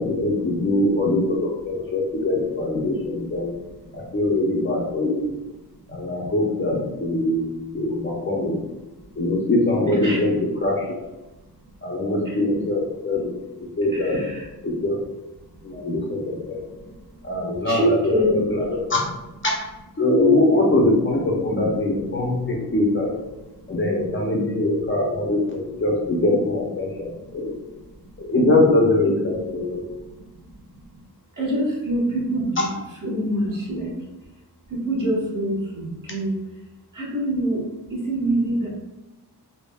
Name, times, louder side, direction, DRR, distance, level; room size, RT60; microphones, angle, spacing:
voice 1, 0.0-3.6 3.9-5.2 5.9-8.6 9.2-10.3 10.6-11.0 11.8-13.3 13.8-14.2 14.6-15.0 15.6-16.6 17.2-19.0 19.4-19.5 20.0-23.1 23.7-27.5 28.2-29.8, left 2 dB, 30° left, -2 dB, 0.5 m, -22 dB
voice 2, 3.5-4.2 5.8-5.9 8.8-9.2 9.9-10.2 11.3-11.7 12.2-12.4 13.9-14.5 15.4-15.8 16.4-18.4 18.8-18.9 22.2-22.7 23.5-23.8 26.9-28.1 29.6-31.0 31.3-33.9 34.7-36.4 36.9-38.7, right 1 dB, 50° right, -5 dB, 1.1 m, -28 dB
3.3 x 2.2 x 2.2 m, 1.0 s
wide cardioid pair, 90°, 40 cm